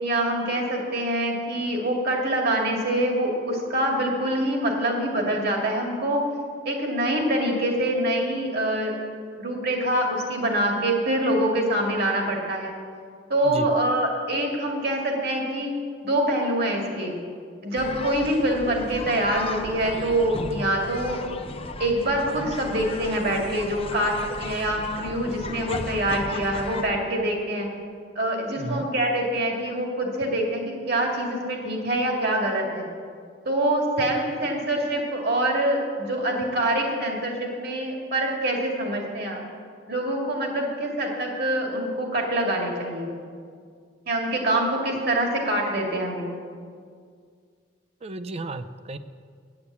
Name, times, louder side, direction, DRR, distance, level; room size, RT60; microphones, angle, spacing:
voice 1, 0.0-6.2 6.7-8.9 9.4-12.7 13.3-15.7 16.0-17.1 17.6-21.2 21.8-27.7 28.2-32.8 33.5-39.4 39.9-43.1 44.1-46.2, right 1 dB, 60° right, 0 dB, 2.1 m, -25 dB
sound 1, 17.8-26.9, left 3 dB, 30° left, 0.5 m, -35 dB
voice 2, 48.0-49.0, right 2 dB, 35° right, 11 dB, 0.4 m, -33 dB
8.8 x 8.3 x 8.2 m, 2.1 s
head